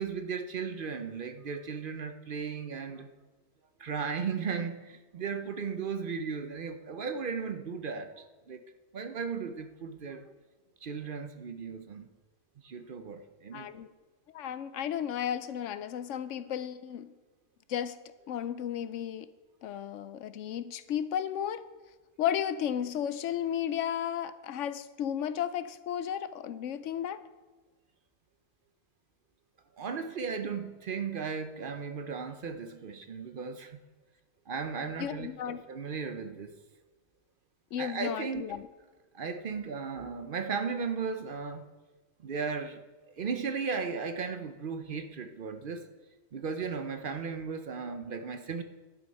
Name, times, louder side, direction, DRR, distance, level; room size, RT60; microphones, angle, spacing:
voice 1, 0.0-3.1 3.8-8.6 8.9-10.3 10.8-12.1 12.6-13.7 29.8-33.8 34.5-36.6 37.8-38.6 39.1-41.7 42.2-42.8 43.2-45.9 46.3-48.6, right 5 dB, 50° right, 8 dB, 0.7 m, -36 dB
voice 2, 13.5-13.9 14.3-17.1 17.7-18.0 18.3-19.3 19.6-21.6 22.2-27.2 35.0-35.6 37.7-38.7, left 9 dB, 75° left, 13 dB, 0.9 m, -34 dB
11.5 x 8.4 x 5.3 m, 1.2 s
omnidirectional pair, 1.3 m